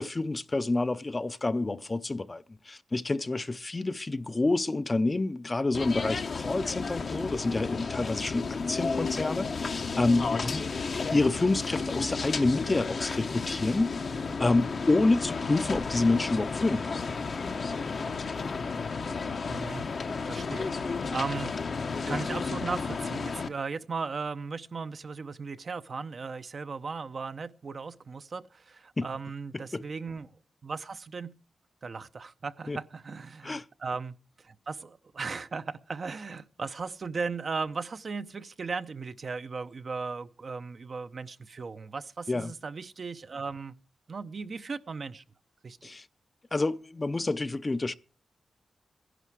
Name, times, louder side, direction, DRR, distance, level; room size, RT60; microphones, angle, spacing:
voice 1, 0.0-10.7 11.1-17.0 29.0-29.1 29.5-29.8 32.7-32.8 33.4-33.6 42.3-42.5 45.8-46.0 46.5-47.9, left 2 dB, 30° left, 0.6 m, -28 dB
sound 1, 5.7-23.5, left 4 dB, 60° left, 0.9 m, -32 dB
voice 2, 19.5-19.9 20.2-21.5 22.1-30.3 30.6-31.3 31.8-34.2 34.4-43.8 44.1-45.2 45.6-45.8, right 4 dB, 55° right, 0.7 m, -37 dB
15.0 x 11.0 x 4.7 m
cardioid pair, 70°, 0 cm